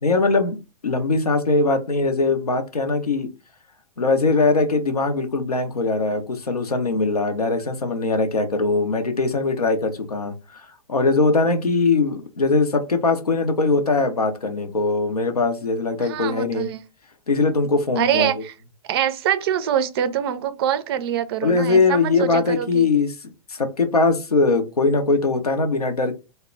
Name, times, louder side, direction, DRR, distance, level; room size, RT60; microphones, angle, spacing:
voice 1, 0.0-3.3 4.0-16.7 17.3-18.3 21.4-23.1 23.5-26.2, left 3 dB, 90° left, 0.6 m, -21 dB
voice 2, 16.0-16.8 18.0-18.5 18.8-22.9, right 9 dB, 40° right, 0.4 m, -24 dB
2.1 x 2.0 x 3.7 m
figure-of-eight pair, 120°, 19 cm